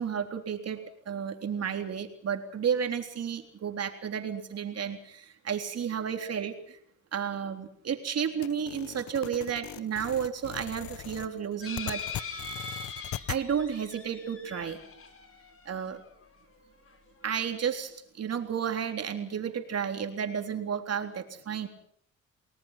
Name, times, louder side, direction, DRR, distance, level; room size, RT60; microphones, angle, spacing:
voice 1, 0.0-6.8 7.1-12.0 13.3-14.8 15.7-16.0 17.2-21.7, right 7 dB, 55° right, 5 dB, 3.7 m, -32 dB
sound 1, 8.4-13.4, left 13 dB, 70° left, 0.9 m, -40 dB
sound 2, 11.6-16.2 16.9-17.0 17.2-17.3, left 4 dB, 45° left, 4.6 m, -41 dB
29.5 x 19.5 x 5.9 m, 0.64 s
cardioid pair, 90°, 30 cm